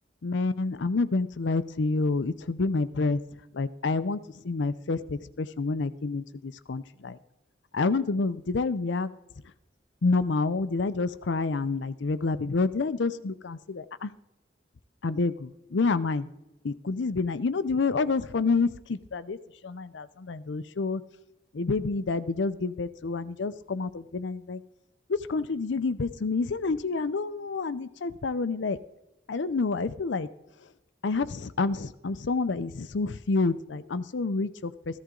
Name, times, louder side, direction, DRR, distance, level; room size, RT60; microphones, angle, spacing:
voice 1, 0.2-3.2 3.5-4.2 4.4-7.2 7.7-9.1 10.0-14.1 15.0-16.3 16.6-19.4 19.6-21.0 21.5-24.6 25.1-28.8 29.3-30.3 31.0-35.0, left 3 dB, 75° left, 14 dB, 0.6 m, -28 dB
14.5 x 14.0 x 3.8 m, 0.94 s
head